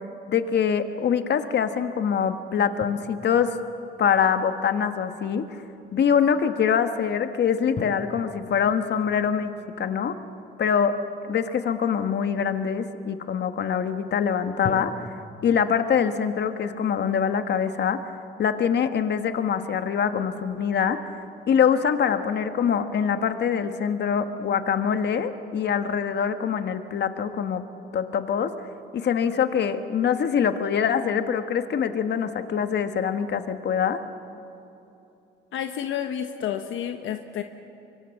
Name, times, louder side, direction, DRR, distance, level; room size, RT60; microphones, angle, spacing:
voice 1, 0.3-3.6 4.0-5.5 5.9-9.5 9.8-10.2 10.6-11.0 11.3-14.9 15.4-18.0 18.4-21.1 21.5-27.6 27.9-28.5 28.9-34.0, left 7 dB, 60° left, 9 dB, 1.5 m, -24 dB
sound 1, 2.8-4.8 7.8-11.0 14.6-15.1, left 5 dB, 40° left, 1.5 m, -40 dB
voice 2, 35.5-37.4, left 9 dB, 80° left, 7 dB, 1.1 m, -30 dB
25.0 x 23.5 x 7.3 m, 2.8 s
cardioid pair, 90°, 20 cm